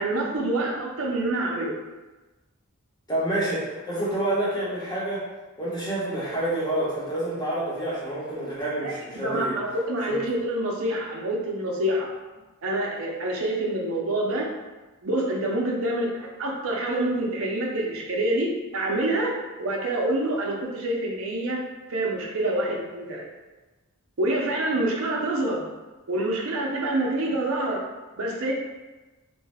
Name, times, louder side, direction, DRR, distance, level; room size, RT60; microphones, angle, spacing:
voice 1, 0.0-1.7 8.8-12.1 12.6-14.5 15.0-19.3 19.6-21.6 21.9-23.2 24.2-25.6 26.1-27.8 28.2-28.5, right 1 dB, 70° right, -1 dB, 0.6 m, -26 dB
voice 2, 3.1-5.2 5.6-9.6 10.1-10.2, right 1 dB, 20° left, -8 dB, 0.9 m, -28 dB
2.6 x 2.2 x 3.3 m, 1.2 s
head